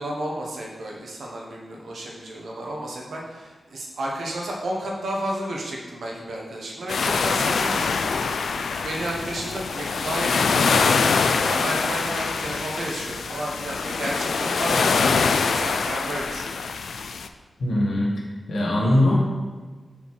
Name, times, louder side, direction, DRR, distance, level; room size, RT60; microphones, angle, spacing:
voice 1, 0.0-7.9 8.3-16.6, right 1 dB, 80° right, -2 dB, 1.4 m, -32 dB
sound 1, 6.9-17.3, left 5 dB, 85° left, 0.4 m, -24 dB
voice 2, 17.6-18.1 18.5-19.2, left 1 dB, 60° left, -3 dB, 1.7 m, -20 dB
5.3 x 4.3 x 6.2 m, 1.4 s
wide cardioid pair, 165°, 0 cm